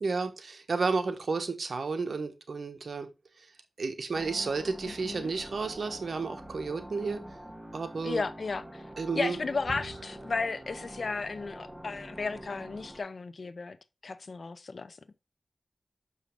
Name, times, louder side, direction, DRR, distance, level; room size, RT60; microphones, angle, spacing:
voice 1, 0.0-3.1 3.8-7.2 7.7-8.2 9.0-9.4, right 4 dB, 80° right, 1.2 m, -32 dB
sound 1, 4.1-13.0, right 1 dB, 10° right, 1.6 m, -45 dB
voice 2, 4.8-5.3 8.0-8.8 9.1-13.8 14.0-15.0, left 4 dB, 70° left, 0.7 m, -34 dB
6.4 x 5.6 x 4.8 m
cardioid pair, 50°, 0 cm